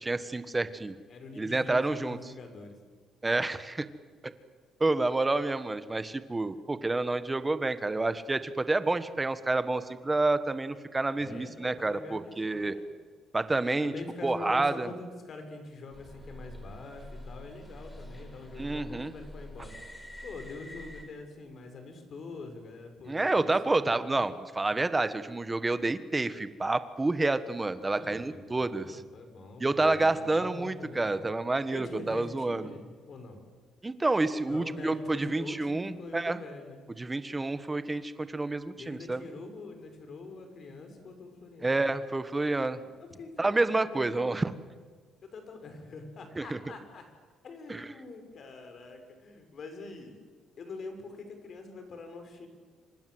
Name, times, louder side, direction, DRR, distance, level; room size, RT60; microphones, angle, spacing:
voice 1, 0.0-0.9 1.4-2.2 3.2-3.9 4.8-12.7 13.3-13.9 14.2-14.9 18.6-19.1 23.1-29.0 29.6-32.7 33.8-36.4 37.0-39.2 41.6-42.8 43.4-44.5 46.4-46.6 47.7-47.9, right 2 dB, 15° right, 12 dB, 1.4 m, -29 dB
voice 2, 0.7-2.8 11.2-12.8 13.8-19.8 20.2-24.3 27.9-31.3 31.7-33.4 34.4-36.9 38.7-41.9 42.8-44.3 45.2-47.1 47.4-50.2 50.6-52.5, left 3 dB, 45° left, 6 dB, 5.8 m, -44 dB
Metropolitan Line Ambience, 15.9-21.1, left 1 dB, 15° left, 4.6 m, -46 dB
28.0 x 25.5 x 7.9 m, 1.5 s
cardioid pair, 140°, 0 cm